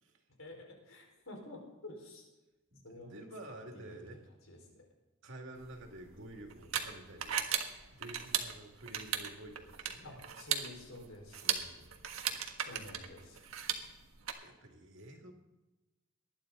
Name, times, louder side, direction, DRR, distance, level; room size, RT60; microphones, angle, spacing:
voice 1, 0.4-2.3 2.8-3.2 3.7-3.8 4.5-4.9 10.0-11.4 12.6-13.4, left 2 dB, 80° left, 0 dB, 5.0 m, -50 dB
voice 2, 2.7-4.2 5.2-7.4 7.9-10.2 11.4-11.9 12.2-12.7 14.4-15.3, right 1 dB, 65° right, 2 dB, 2.5 m, -50 dB
sound 1, 5.6-14.3, right 8 dB, 90° right, 1.5 m, -38 dB
19.5 x 12.0 x 4.0 m, 1.1 s
head